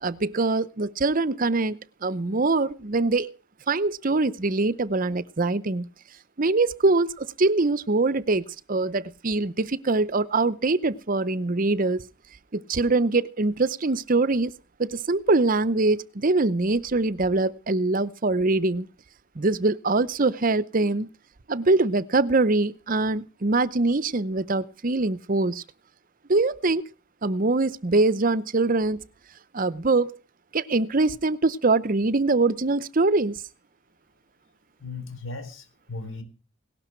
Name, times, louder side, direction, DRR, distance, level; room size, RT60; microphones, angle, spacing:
voice 1, 0.0-3.3 3.7-5.9 6.4-12.0 12.5-14.5 14.8-18.9 19.4-21.1 21.5-25.6 26.3-26.9 27.2-29.0 29.5-30.2 30.5-33.4, right 3 dB, 40° right, 18 dB, 0.7 m, -23 dB
voice 2, 34.8-36.2, left 3 dB, 65° left, 9 dB, 3.9 m, -37 dB
18.0 x 12.5 x 4.5 m, 0.35 s
head